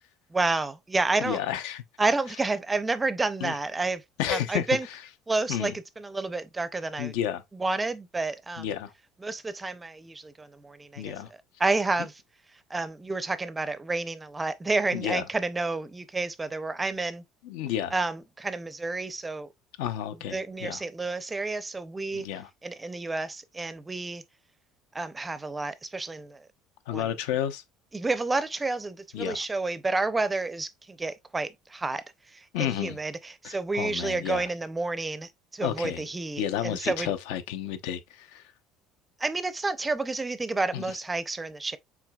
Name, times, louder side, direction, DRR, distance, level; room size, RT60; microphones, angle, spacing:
voice 1, 0.3-1.4 2.0-4.0 4.3-4.9 5.3-7.1 7.5-8.7 9.2-11.1 11.6-12.1 12.7-17.2 17.9-19.5 20.3-22.3 22.6-24.2 24.9-26.4 26.9-27.1 27.9-32.0 32.3-37.1 39.2-41.8, right 3 dB, 10° right, 0.4 m, -30 dB
voice 2, 1.2-1.8 3.4-3.6 4.2-4.7 5.5-5.7 7.0-7.4 8.6-8.9 11.0-11.3 14.9-15.2 17.4-17.9 19.8-20.8 22.1-22.5 26.9-27.6 29.1-29.4 32.5-33.0 33.4-34.4 35.6-36.0 36.4-38.4 40.7-40.8, left 10 dB, 85° left, 0.7 m, -31 dB
5.9 x 3.7 x 2.3 m
cardioid pair, 145°, 0 cm